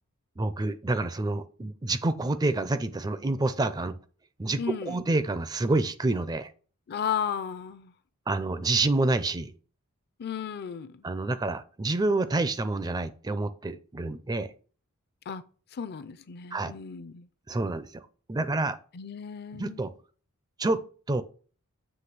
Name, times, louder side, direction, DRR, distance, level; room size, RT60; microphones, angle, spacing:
voice 1, 0.4-3.9 4.4-4.6 4.9-6.5 8.3-9.5 11.0-14.5 16.5-16.7 17.5-18.0 18.3-18.8 19.5-19.9 20.6-20.8 21.1-21.2, right 2 dB, 15° right, 0.4 m, -28 dB
voice 2, 4.6-5.0 6.9-7.9 10.2-11.0 15.3-15.4 15.7-17.3 18.9-19.8, left 7 dB, 45° left, 0.5 m, -34 dB
7.8 x 3.1 x 5.9 m
head